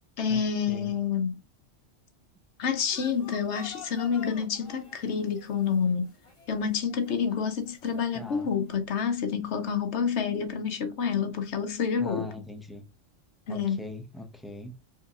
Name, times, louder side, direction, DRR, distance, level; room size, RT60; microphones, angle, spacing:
voice 1, 0.2-1.4 2.6-6.1 6.5-12.3 13.5-13.8, left 6 dB, 65° left, 1.1 m, -28 dB
sound 1, 2.8-8.8, left 4 dB, 25° left, 1.0 m, -49 dB
voice 2, 8.1-8.5 12.0-12.8 13.5-14.7, left 2 dB, ahead, 0.4 m, -40 dB
4.4 x 3.6 x 2.4 m
omnidirectional pair, 1.3 m